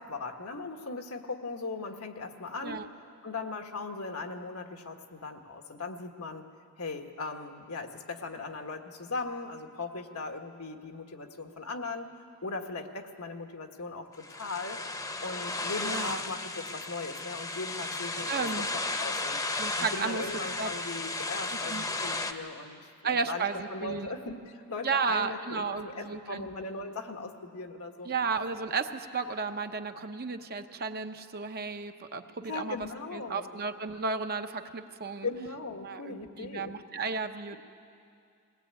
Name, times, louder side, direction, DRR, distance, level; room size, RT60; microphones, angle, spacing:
voice 1, 0.0-2.9 3.2-6.5 6.8-12.1 12.4-14.8 15.2-18.5 19.0-19.4 19.8-28.1 32.4-33.5 35.2-36.7, left 3 dB, 80° left, 4 dB, 1.6 m, -38 dB
sound 1, 14.2-22.3, left 2 dB, 15° left, 0.9 m, -34 dB
voice 2, 15.8-16.2 18.3-18.7 19.6-20.2 20.6-20.7 21.7-21.8 23.0-24.1 24.8-26.5 28.0-32.8 33.1-35.3 35.8-37.6, right 5 dB, 45° right, 6 dB, 0.9 m, -33 dB
21.0 x 18.5 x 8.9 m, 2.4 s
head